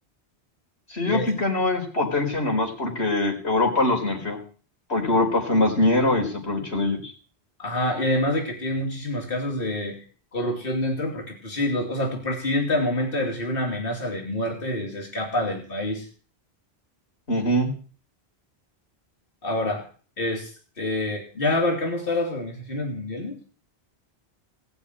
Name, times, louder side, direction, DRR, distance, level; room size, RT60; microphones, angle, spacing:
voice 1, 0.9-4.4 4.9-7.1 17.3-17.7, left 2 dB, 90° left, 2 dB, 4.7 m, -23 dB
voice 2, 7.6-10.0 10.3-16.1 19.4-19.8 20.2-23.3, left 1 dB, 60° left, 1 dB, 3.0 m, -27 dB
18.0 x 7.0 x 9.8 m, 0.40 s
omnidirectional pair, 1.1 m